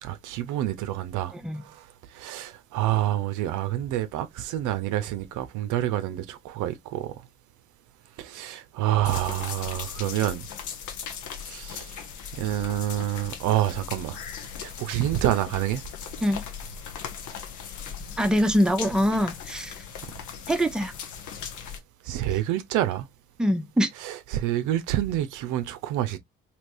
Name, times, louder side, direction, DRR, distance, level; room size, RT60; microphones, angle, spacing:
voice 1, 0.0-1.3 1.6-1.8 2.1-7.2 8.2-10.5 11.4-12.0 12.3-14.2 14.6-15.8 22.0-23.1 24.0-26.2, right 13 dB, 70° right, 0.6 m, -28 dB
sound 1, 9.0-21.8, left 7 dB, 65° left, 0.9 m, -38 dB
voice 2, 18.2-19.7 20.5-20.9 23.4-23.9, equal, ahead, 0.7 m, -23 dB
3.3 x 2.9 x 2.6 m
hypercardioid pair, 55°, 32 cm